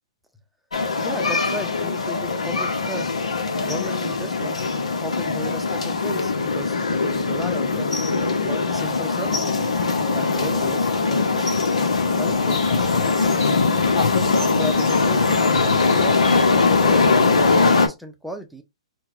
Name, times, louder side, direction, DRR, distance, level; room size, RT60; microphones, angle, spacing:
sound 1, 0.7-17.9, left 4 dB, 85° left, 0.8 m, -21 dB
voice 1, 1.0-3.1 3.6-4.6 5.0-8.0 8.5-9.6 10.1-11.8 12.2-13.6 14.2-16.5 16.8-18.6, equal, ahead, 0.7 m, -36 dB
sound 2, 12.1-17.6, left 3 dB, 40° left, 1.6 m, -38 dB
4.4 x 2.2 x 2.5 m
hypercardioid pair, 130°, 3 cm